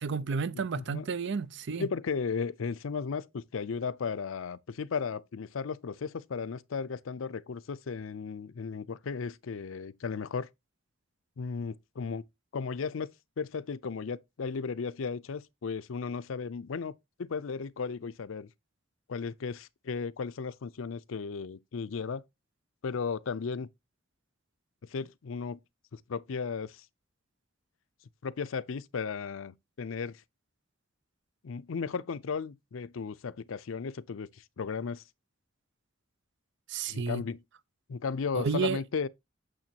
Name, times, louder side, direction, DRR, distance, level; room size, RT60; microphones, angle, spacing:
voice 1, 0.0-1.9 36.7-37.2 38.3-38.8, right 5 dB, 65° right, 0.5 m, -31 dB
voice 2, 0.5-1.1 1.8-10.5 11.4-12.2 12.5-13.1 13.4-16.9 17.2-18.5 19.1-22.2 22.8-23.7 24.9-25.6 25.9-26.8 28.2-30.2 31.4-35.0 36.9-37.4 37.9-39.1, left 5 dB, 90° left, 0.5 m, -35 dB
9.0 x 6.5 x 2.8 m
head